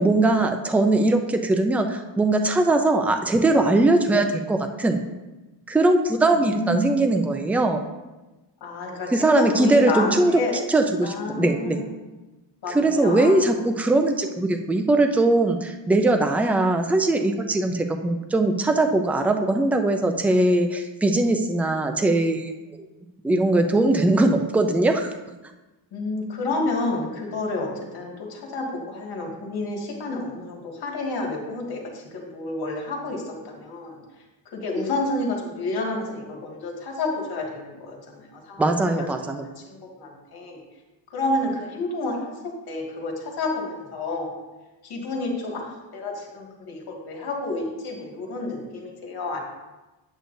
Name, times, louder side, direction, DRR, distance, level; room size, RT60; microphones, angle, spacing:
voice 1, 0.0-5.0 5.7-7.8 9.1-10.4 10.7-11.8 12.7-22.5 23.2-25.1 38.6-39.5, right 2 dB, 5° right, 5 dB, 0.3 m, -20 dB
voice 2, 6.3-7.1 8.6-10.6 11.0-11.8 12.6-13.4 25.9-34.0 34.5-40.6 41.1-44.4 44.8-49.4, left 2 dB, 55° left, -1 dB, 1.9 m, -30 dB
9.0 x 8.3 x 2.6 m, 1.1 s
cardioid pair, 160°, 45 cm